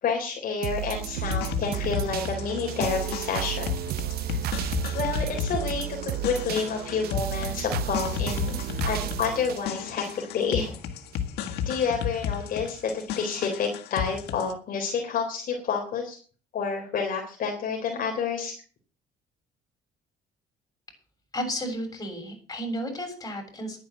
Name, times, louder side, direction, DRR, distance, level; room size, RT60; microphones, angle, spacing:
voice 1, 0.0-3.7 4.3-4.4 4.9-8.6 8.9-10.0 10.3-10.7 11.7-16.2 16.5-18.6, left 5 dB, 55° left, 2 dB, 3.5 m, -29 dB
sound 1, 0.6-10.7 11.1-11.2, right 13 dB, 65° right, 0.7 m, -33 dB
sound 2, 1.2-14.5, left 9 dB, 80° left, 1.8 m, -33 dB
voice 2, 21.3-23.8, equal, 20° left, 3 dB, 7.2 m, -33 dB
11.0 x 9.5 x 7.8 m, 0.41 s
cardioid pair, 110°, 17 cm